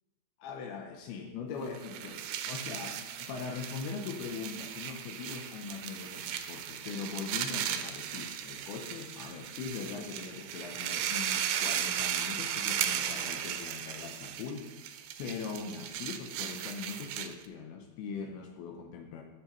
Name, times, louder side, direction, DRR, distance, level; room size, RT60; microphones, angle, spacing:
voice 1, 0.4-14.8 15.2-19.2, left 5 dB, 75° left, 3 dB, 2.6 m, -41 dB
sound 1, 1.7-17.5, right 10 dB, 85° right, 2.0 m, -36 dB
15.0 x 6.8 x 3.0 m, 1.1 s
omnidirectional pair, 4.8 m